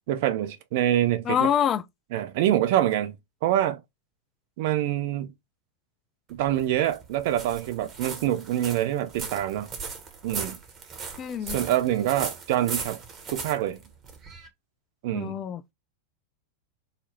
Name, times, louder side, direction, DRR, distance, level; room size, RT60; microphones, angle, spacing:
voice 1, 0.1-1.5 2.1-3.1 3.4-3.8 4.6-5.3 6.3-9.7 10.2-10.6 11.5-13.0 13.3-13.8 15.0-15.4, right 12 dB, 50° right, 0.5 m, -25 dB
voice 2, 1.3-1.8 11.2-11.6 15.1-15.6, left 9 dB, 30° left, 0.3 m, -25 dB
sound 1, 6.3-14.5, right 5 dB, 30° right, 0.9 m, -38 dB
4.0 x 2.0 x 2.9 m
figure-of-eight pair, 90°, 0 cm